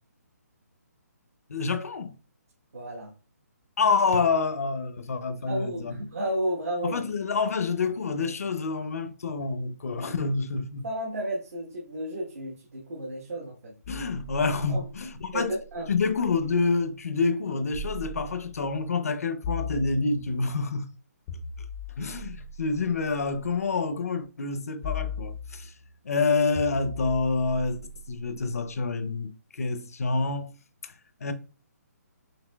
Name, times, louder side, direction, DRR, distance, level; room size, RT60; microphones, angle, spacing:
voice 1, 1.5-2.1 3.8-6.1 6.8-10.9 13.9-15.5 15.9-20.9 22.0-25.7 26.0-27.8 28.1-30.5 30.8-30.9 31.2-31.3, left 4 dB, 60° left, 0.6 m, -27 dB
voice 2, 2.7-3.1 5.5-7.0 10.8-13.7 14.7-14.8 15.3-15.4 15.7-15.9, right 1 dB, 60° right, 1.2 m, -32 dB
sound 1, 13.8-16.6 17.7-18.8 19.4-20.5 21.3-23.5 24.8-25.9 26.5-28.7, left 4 dB, 15° left, 0.5 m, -39 dB
5.9 x 2.7 x 2.2 m
hypercardioid pair, 170°, 9 cm